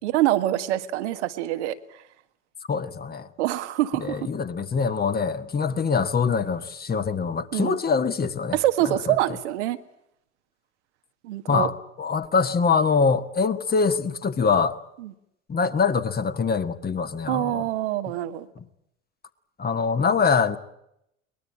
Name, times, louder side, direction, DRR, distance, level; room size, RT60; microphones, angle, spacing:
voice 1, 0.0-1.8 3.4-4.3 7.5-7.8 8.5-9.8 11.2-11.7 15.0-15.1 17.3-18.5, right 14 dB, 65° right, 1.7 m, -25 dB
voice 2, 2.7-3.3 4.0-8.6 9.1-9.2 11.5-14.8 15.5-17.7 18.6-18.7 19.6-20.6, left 5 dB, 25° left, 1.7 m, -24 dB
23.0 x 21.0 x 8.8 m
figure-of-eight pair, 70°, 37 cm